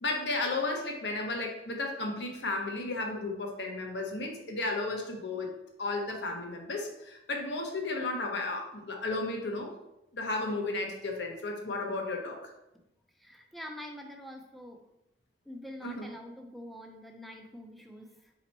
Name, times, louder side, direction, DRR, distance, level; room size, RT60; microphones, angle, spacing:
voice 1, 0.0-5.5 5.8-9.7 10.1-12.5 15.8-16.1, left 2 dB, 70° left, 2 dB, 0.8 m, -33 dB
voice 2, 13.2-14.8 15.5-18.3, left 1 dB, ahead, 3 dB, 0.5 m, -45 dB
4.2 x 3.0 x 4.1 m, 0.89 s
head